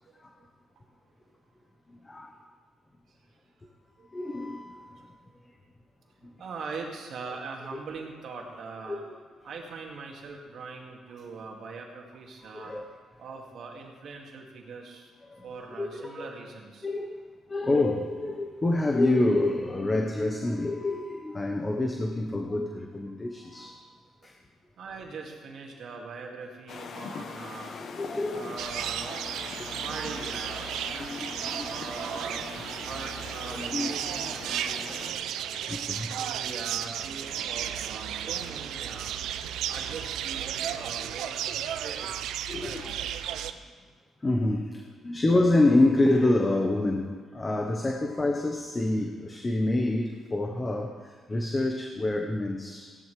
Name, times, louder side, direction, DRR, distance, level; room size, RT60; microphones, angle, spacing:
voice 1, 1.9-2.4 4.1-5.0 7.7-7.8 8.9-9.2 12.5-12.8 15.2-15.5 15.8-16.3 16.8-17.2 17.5-23.8 24.2-24.4 27.8-28.6 29.5-29.7 31.0-32.0 33.5-33.9 34.4-34.8 35.5-36.1 42.5-43.0 44.2-52.9, left 2 dB, 25° left, 3 dB, 1.0 m, -27 dB
voice 2, 6.4-9.0 9.4-12.7 13.2-15.1 15.4-16.9 24.8-27.7 28.3-29.4 29.7-31.1 31.6-32.5 32.8-35.3 36.1-39.1 39.7-42.9 51.5-51.6, right 4 dB, 65° right, 0 dB, 2.2 m, -41 dB
sound 1, 26.7-35.1, left 5 dB, 60° left, 1.0 m, -41 dB
sound 2, 28.6-43.5, right 10 dB, 85° right, 0.5 m, -34 dB
16.0 x 11.0 x 3.4 m, 1.5 s
cardioid pair, 90°, 0 cm